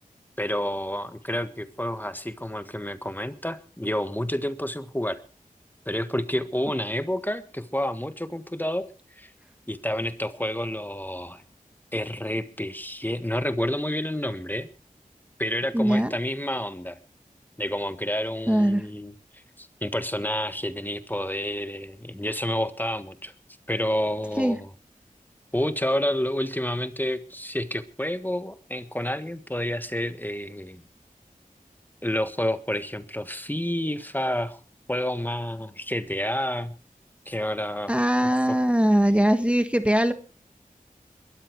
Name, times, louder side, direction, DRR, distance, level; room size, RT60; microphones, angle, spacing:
voice 1, 0.4-5.2 5.8-8.9 9.2-9.3 9.7-11.4 11.9-14.7 15.4-17.0 17.6-23.3 23.7-24.7 25.5-30.8 32.0-34.6 34.9-36.7 37.2-37.9 38.5-38.6, left 1 dB, 15° left, 11 dB, 1.5 m, -29 dB
voice 2, 15.7-16.1 18.5-18.9 24.4-24.6 37.9-40.1, equal, 10° right, 9 dB, 1.3 m, -21 dB
21.5 x 13.5 x 4.7 m, 0.38 s
wide cardioid pair, 45°, 15 cm